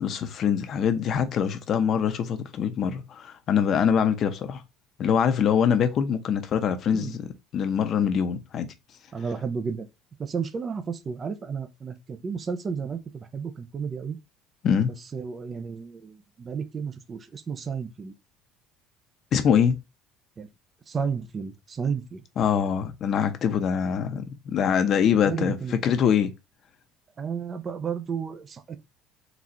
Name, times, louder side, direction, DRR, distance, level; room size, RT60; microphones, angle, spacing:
voice 1, 0.0-4.6 5.0-7.3 7.5-8.7 14.6-14.9 19.3-19.8 22.4-26.3, left 7 dB, 45° left, 0.7 m, -24 dB
voice 2, 9.1-9.9 10.2-14.2 14.8-18.1 20.4-20.5 20.9-22.2 25.2-25.8 27.2-28.8, right 6 dB, 30° right, 0.5 m, -32 dB
4.0 x 2.4 x 4.2 m
cardioid pair, 135°, 0 cm